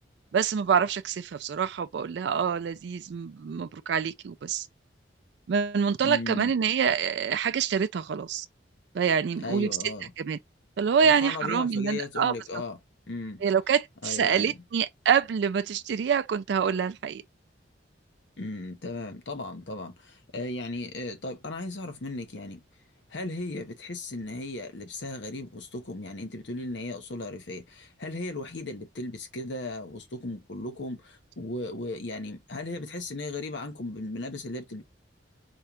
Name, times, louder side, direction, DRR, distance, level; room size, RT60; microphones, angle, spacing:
voice 1, 0.3-4.7 5.5-8.5 8.9-10.4 10.8-12.3 13.4-17.2, right 7 dB, 65° right, 0.3 m, -26 dB
voice 2, 6.0-6.5 9.4-10.1 11.0-12.8 13.1-13.4 14.0-14.5 18.4-22.6 23.1-34.8, left 2 dB, 70° left, 0.9 m, -36 dB
4.3 x 2.3 x 2.9 m
head